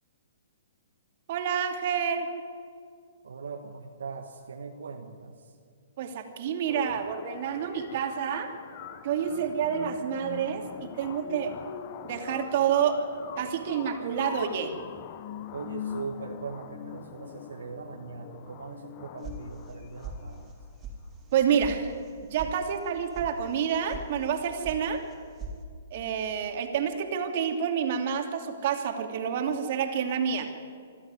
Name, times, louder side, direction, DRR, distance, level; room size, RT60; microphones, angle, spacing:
voice 1, 1.3-2.3 6.0-8.5 9.0-11.5 12.0-13.0 13.4-14.7 21.3-21.9 22.2-25.0 25.9-30.5, right 8 dB, 50° right, 5 dB, 2.8 m, -28 dB
voice 2, 3.2-5.5 15.5-20.5, right 5 dB, 75° right, 3 dB, 1.7 m, -40 dB
sound 1, 6.7-20.7, left 9 dB, 40° left, 1.2 m, -43 dB
sound 2, 19.2-19.8 20.0-20.6 20.8-20.9 21.3-21.7 22.0-22.5 22.8-23.3 23.6-24.1 24.3-24.8 25.1-25.6, right 4 dB, 20° right, 3.6 m, -40 dB
25.5 x 12.5 x 9.7 m, 2.2 s
hypercardioid pair, 130°, 0 cm